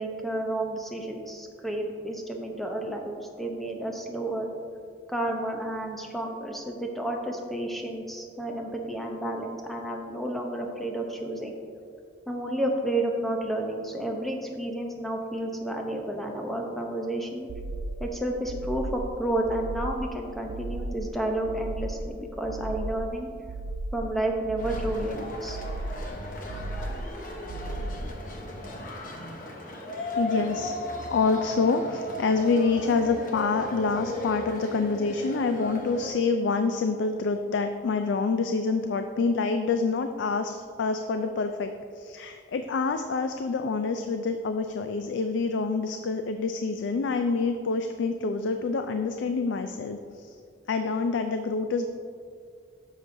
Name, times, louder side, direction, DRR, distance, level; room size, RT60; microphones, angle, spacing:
voice 1, 0.0-4.5 5.1-11.6 12.3-17.5 18.0-23.3 23.9-25.6, right 1 dB, ahead, 1 dB, 0.7 m, -31 dB
sound 1, 17.5-18.1 18.5-19.1 19.5-20.1 20.5-21.1 21.5-22.1 22.5-23.1 23.5-24.1 24.5-25.1 25.5-26.1 26.5-27.1 27.5-28.1, right 2 dB, 80° right, 0.5 m, -35 dB
sound 2, 24.6-36.1, left 1 dB, 50° left, 0.9 m, -36 dB
voice 2, 30.2-30.7 31.1-41.7 42.0-50.0 50.7-51.9, left 4 dB, 85° left, 7 dB, 0.4 m, -27 dB
9.9 x 6.6 x 2.7 m, 2.2 s
head